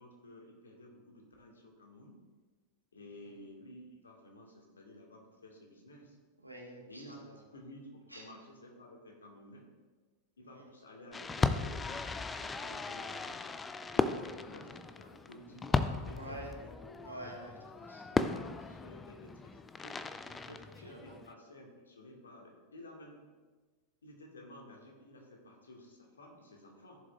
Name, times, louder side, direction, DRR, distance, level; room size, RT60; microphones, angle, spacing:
voice 1, 0.0-2.2 2.9-6.2 6.9-9.7 10.4-13.5 13.9-17.0 18.1-20.0 20.8-23.2 24.0-27.0, left 1 dB, 70° left, 0 dB, 1.8 m, -53 dB
voice 2, 6.4-7.4 8.1-8.2 10.5-10.7 16.1-16.5 17.0-18.0 20.4-21.2, right 1 dB, 90° right, -1 dB, 1.6 m, -48 dB
Fireworks, 11.1-21.3, left 4 dB, 15° left, 0.4 m, -36 dB
14.5 x 7.2 x 2.4 m, 1.4 s
figure-of-eight pair, 90°, 0 cm